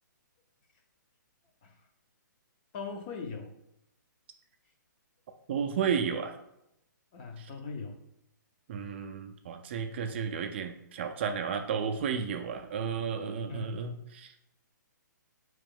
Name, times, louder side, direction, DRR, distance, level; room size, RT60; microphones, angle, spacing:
voice 1, 2.7-3.5 7.1-8.0 13.5-13.8, left 4 dB, 30° left, 4 dB, 0.5 m, -40 dB
voice 2, 5.5-6.4 7.4-7.5 8.7-14.3, right 6 dB, 35° right, 5 dB, 0.3 m, -33 dB
4.6 x 2.9 x 3.7 m, 0.82 s
hypercardioid pair, 155°, 10 cm